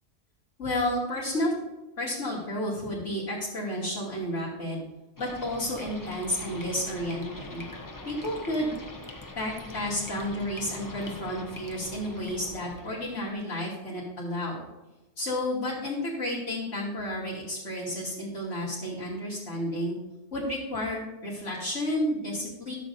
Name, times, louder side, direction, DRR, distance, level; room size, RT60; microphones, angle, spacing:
voice 1, 0.6-1.5 2.0-4.8 5.2-7.6 8.0-8.7 9.4-14.7 15.2-20.0 20.3-22.7, left 1 dB, 90° left, -10 dB, 3.1 m, -31 dB
sound 1, 5.2-13.3, left 2 dB, 20° left, 0.8 m, -43 dB
14.0 x 7.2 x 2.7 m, 1.1 s
omnidirectional pair, 1.2 m